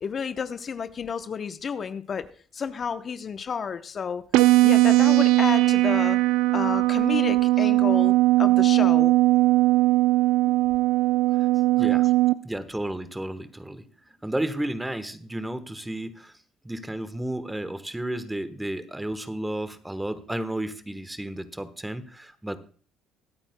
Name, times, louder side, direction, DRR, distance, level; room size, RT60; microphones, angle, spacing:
voice 1, 0.0-2.3 2.5-4.2 4.6-6.2 6.5-9.1 11.8-11.9, left 6 dB, 45° left, 10 dB, 0.8 m, -31 dB
sound 1, 4.3-12.3, right 18 dB, 80° right, 0.4 m, -19 dB
voice 2, 11.8-12.1 12.4-13.9 14.2-16.4 16.6-22.6, right 1 dB, 10° right, 12 dB, 1.1 m, -32 dB
24.0 x 8.8 x 2.2 m, 0.43 s
supercardioid pair, 70°, 0 cm